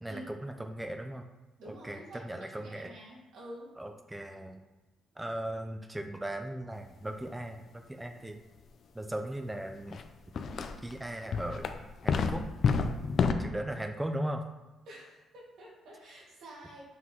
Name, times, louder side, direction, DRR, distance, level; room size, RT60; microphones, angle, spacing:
voice 1, 0.0-1.2 1.7-2.9 3.8-4.6 5.2-8.4 8.9-10.0 10.8-11.7 12.0-12.5 13.4-14.4, right 1 dB, 10° right, 5 dB, 0.4 m, -38 dB
voice 2, 1.6-2.3 2.6-3.7 14.9-16.8, right 1 dB, 80° right, -4 dB, 2.1 m, -48 dB
sound 1, 9.9-10.0 10.3-10.9 11.3-13.3, left 5 dB, 55° left, 0.5 m, -28 dB
5.9 x 5.5 x 3.1 m, 1.1 s
cardioid pair, 90°, 0 cm